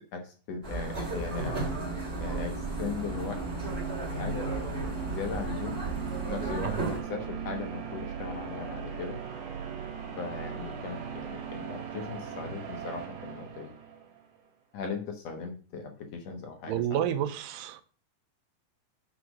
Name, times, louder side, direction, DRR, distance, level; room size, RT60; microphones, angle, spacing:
voice 1, 0.1-1.8 2.2-3.4 4.1-5.8 6.3-9.2 10.2-13.7 14.7-17.2, left 5 dB, 60° left, 2.1 m, -38 dB
sound 1, 0.6-7.0, right 2 dB, 20° right, 2.2 m, -34 dB
sound 2, 1.3-14.2, right 7 dB, 65° right, 3.0 m, -39 dB
voice 2, 16.7-17.8, right 11 dB, 90° right, 2.4 m, -30 dB
6.3 x 5.9 x 6.4 m
omnidirectional pair, 3.9 m